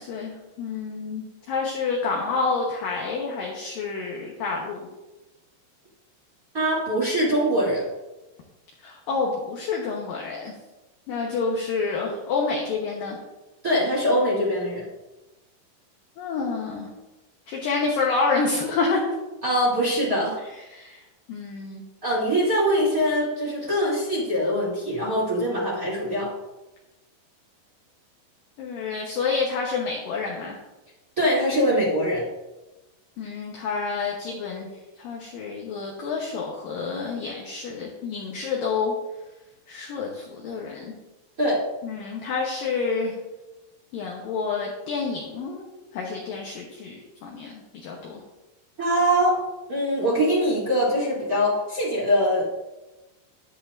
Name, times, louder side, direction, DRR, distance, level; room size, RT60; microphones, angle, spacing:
voice 1, 0.0-4.9 8.8-10.5 11.1-13.2 16.2-16.9 17.5-19.1 20.7-21.0 21.3-21.8 28.6-30.6 33.2-34.7 35.0-39.0 39.7-40.9 41.8-43.2 43.9-48.2, left 4 dB, 80° left, -2 dB, 2.0 m, -28 dB
voice 2, 6.5-7.8 13.6-14.8 19.4-20.4 22.0-26.3 31.2-32.2 41.4-41.6 48.8-49.4 49.7-52.5, equal, 20° right, -6 dB, 2.6 m, -23 dB
10.5 x 10.5 x 2.6 m, 1.0 s
omnidirectional pair, 5.5 m